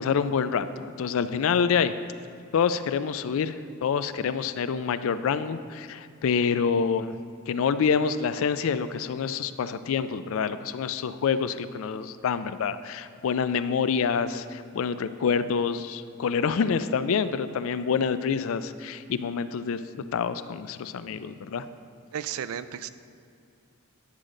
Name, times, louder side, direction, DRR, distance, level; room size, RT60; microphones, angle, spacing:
voice 1, 0.0-1.9 2.5-7.1 7.5-21.7, left 6 dB, 65° left, 13 dB, 0.3 m, -27 dB
voice 2, 22.1-22.9, right 9 dB, 75° right, 13 dB, 0.3 m, -33 dB
9.8 x 6.4 x 3.7 m, 2.5 s
head